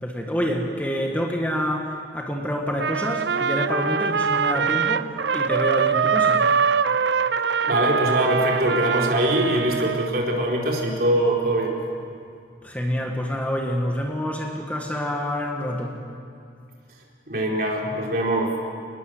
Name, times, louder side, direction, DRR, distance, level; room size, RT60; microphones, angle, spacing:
voice 1, 0.0-6.5 12.6-16.0, equal, 10° left, 1 dB, 1.7 m, -27 dB
Trumpet, 2.8-10.1, right 6 dB, 70° right, 0.6 m, -23 dB
voice 2, 7.6-11.8 17.3-18.5, right 1 dB, 50° right, -1 dB, 4.3 m, -23 dB
27.0 x 20.5 x 8.0 m, 2.4 s
head